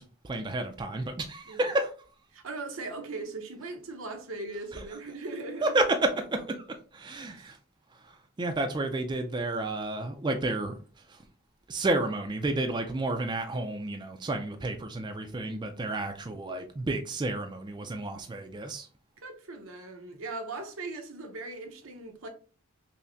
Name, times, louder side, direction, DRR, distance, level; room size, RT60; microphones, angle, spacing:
voice 1, 0.0-1.9 4.7-4.8 5.6-6.6 6.9-7.6 7.9-10.8 11.1-11.2 11.7-18.9, right 2 dB, 20° right, 0.3 m, -31 dB
voice 2, 2.3-5.7 7.3-7.5 19.2-22.3, right 3 dB, 80° right, 0.8 m, -39 dB
5.5 x 2.1 x 2.6 m
head